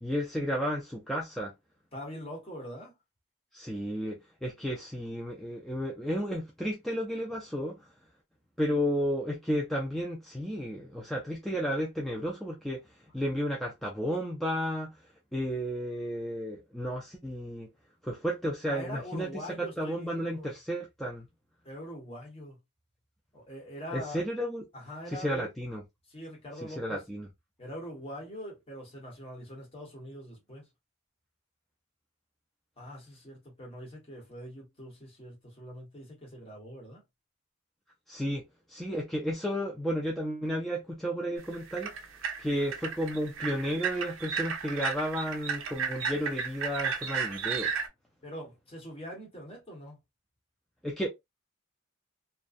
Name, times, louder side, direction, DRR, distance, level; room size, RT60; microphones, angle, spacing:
voice 1, 0.0-1.5 3.5-7.9 8.6-12.8 13.1-14.9 15.3-17.7 18.0-21.3 23.9-24.6 25.1-25.8 26.6-27.3 38.1-38.4 38.7-41.9 42.4-47.7 50.8-51.1, equal, ahead, 0.3 m, -32 dB
voice 2, 1.9-2.9 18.7-20.5 21.6-22.6 23.3-24.2 24.7-25.5 26.1-27.0 27.6-30.7 32.8-37.0 48.2-50.0, equal, 30° left, 1.1 m, -43 dB
sound 1, 41.4-47.9, right 6 dB, 70° right, 0.5 m, -34 dB
2.5 x 2.2 x 2.4 m
head